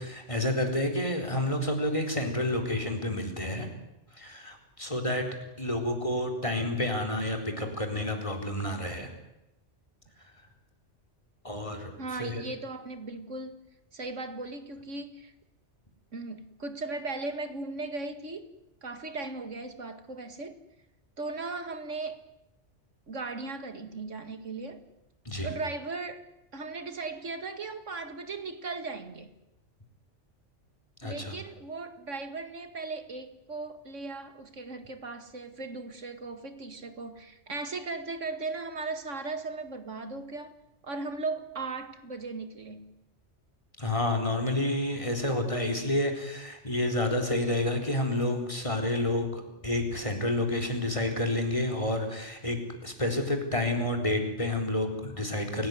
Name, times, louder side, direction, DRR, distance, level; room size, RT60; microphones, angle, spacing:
voice 1, 0.0-3.7 4.1-5.2 5.6-9.1 11.4-12.4 25.3-25.5 31.0-31.3 43.8-55.7, left 1 dB, 25° left, 4.2 m, -29 dB
voice 2, 12.0-13.6 13.9-15.3 16.1-18.5 18.8-20.6 21.2-22.2 23.1-24.9 25.4-26.3 26.5-29.3 31.0-40.5 40.8-42.9, right 3 dB, 90° right, 2.5 m, -37 dB
28.5 x 17.5 x 9.5 m
omnidirectional pair, 1.2 m